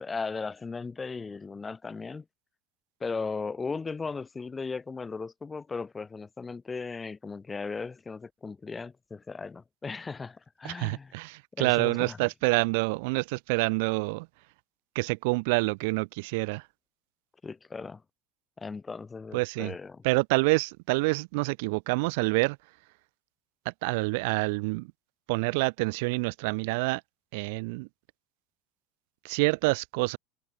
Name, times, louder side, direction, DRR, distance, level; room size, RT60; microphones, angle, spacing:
voice 1, 0.0-2.3 3.0-11.1 11.5-12.2 17.4-18.0 18.6-20.0, left 4 dB, 15° left, 1.7 m, -37 dB
voice 2, 10.6-14.3 14.9-16.7 19.3-19.7 20.0-22.6 23.7-24.9 25.3-27.0 27.3-27.9 29.2-30.2, right 28 dB, 65° right, 0.5 m, -27 dB
supercardioid pair, 155°, 0 cm